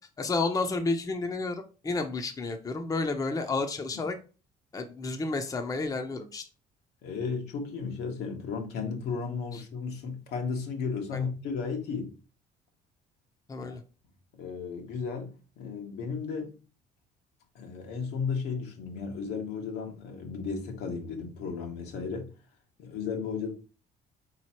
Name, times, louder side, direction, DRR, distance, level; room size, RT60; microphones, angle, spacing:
voice 1, 0.2-4.2 4.7-6.4 9.5-9.6 11.1-11.3 13.5-13.8, left 3 dB, 20° left, 0.6 m, -31 dB
voice 2, 7.0-12.1 14.4-16.6 17.5-22.3 22.8-23.5, left 5 dB, 80° left, 1.2 m, -34 dB
4.1 x 3.1 x 4.2 m
cardioid pair, 110°, 17 cm